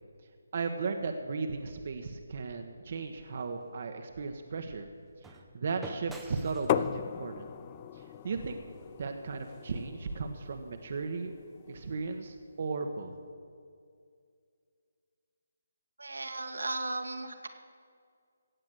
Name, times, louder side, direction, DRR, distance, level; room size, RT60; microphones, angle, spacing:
voice 1, 0.5-4.9 5.2-7.5 8.2-8.6 9.0-11.3 11.7-13.1, right 4 dB, 50° right, 5 dB, 1.1 m, -36 dB
sound 1, 3.0-9.2, right 2 dB, 5° right, 0.8 m, -51 dB
sound 2, 6.7-12.3, left 10 dB, 25° left, 0.4 m, -37 dB
voice 2, 16.0-17.5, right 2 dB, 85° right, 5 dB, 1.7 m, -36 dB
17.0 x 7.7 x 7.9 m, 2.3 s
figure-of-eight pair, 155°, 0 cm